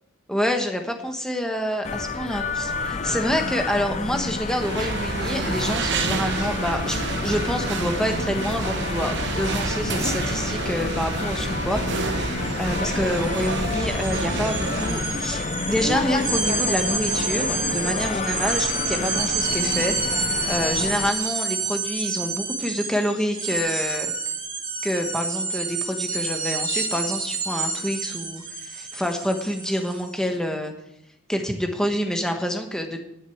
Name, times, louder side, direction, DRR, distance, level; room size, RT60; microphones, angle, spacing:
voice 1, 0.3-24.1 24.8-30.7 31.3-33.0, equal, 5° left, 4 dB, 1.3 m, -27 dB
sound 1, 1.8-21.1, left 3 dB, 35° left, 0.6 m, -29 dB
sound 2, 4.5-15.2, right 3 dB, 55° right, 1.1 m, -29 dB
sound 3, 12.4-12.5 12.8-30.1, right 4 dB, 20° right, 2.4 m, -29 dB
11.0 x 6.5 x 8.6 m, 0.81 s
head